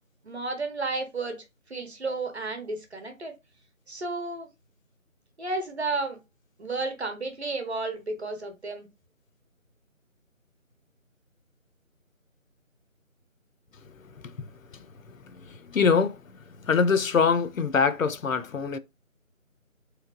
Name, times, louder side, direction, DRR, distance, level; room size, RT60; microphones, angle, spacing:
voice 1, 0.2-1.4 1.7-3.3 3.9-4.5 5.4-6.2 6.6-8.9, right 3 dB, 50° right, 0.9 m, -32 dB
voice 2, 15.5-16.2 16.6-18.8, left 5 dB, 75° left, 0.6 m, -24 dB
3.1 x 3.1 x 2.4 m
figure-of-eight pair, 170°, 41 cm